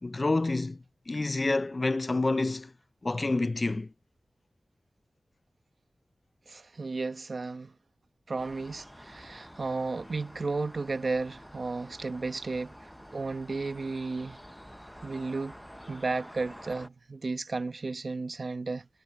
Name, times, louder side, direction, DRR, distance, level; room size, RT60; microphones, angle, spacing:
voice 1, 0.0-2.7 3.0-3.9, left 2 dB, 40° left, 0.5 m, -28 dB
voice 2, 6.5-7.7 8.3-12.7 13.1-14.4 15.0-15.6 15.9-18.9, right 3 dB, 60° right, 1.0 m, -33 dB
sound 1, 8.4-16.9, equal, ahead, 0.7 m, -49 dB
wide cardioid pair, 75°, 0 cm